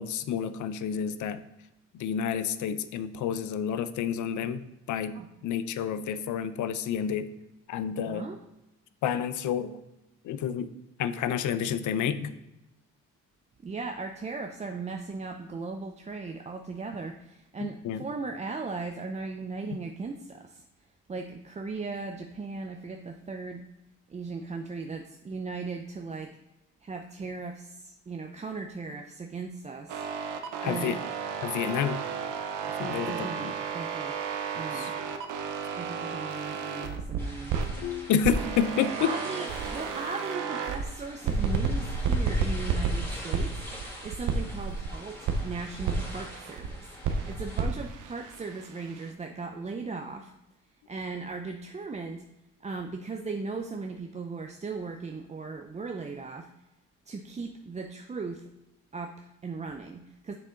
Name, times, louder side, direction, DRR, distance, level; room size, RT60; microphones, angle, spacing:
voice 1, 0.0-1.4 1.9-5.2 5.4-7.3 7.7-8.3 9.0-9.8 10.2-10.7 11.0-12.4 17.6-18.0 30.6-31.0 31.4-32.0 32.8-33.5 34.5-34.9 37.7-39.1, left 8 dB, 75° left, 13 dB, 0.6 m, -30 dB
voice 2, 8.1-8.4 13.6-20.6 21.1-23.7 24.1-26.3 26.8-30.0 30.6-31.0 32.8-34.2 34.5-35.0 35.8-37.5 39.0-50.3 50.9-52.2 52.6-56.5 57.1-58.5 58.9-60.3, right 4 dB, 25° right, 4 dB, 0.5 m, -38 dB
sound 1, 29.9-37.7 38.2-40.9 41.3-44.9 45.3-46.7 47.0-49.1, right 5 dB, 85° right, 0.8 m, -32 dB
sound 2, 37.2-47.6, left 1 dB, 10° left, 2.5 m, -45 dB
6.7 x 6.2 x 3.8 m, 0.96 s
cardioid pair, 90°, 30 cm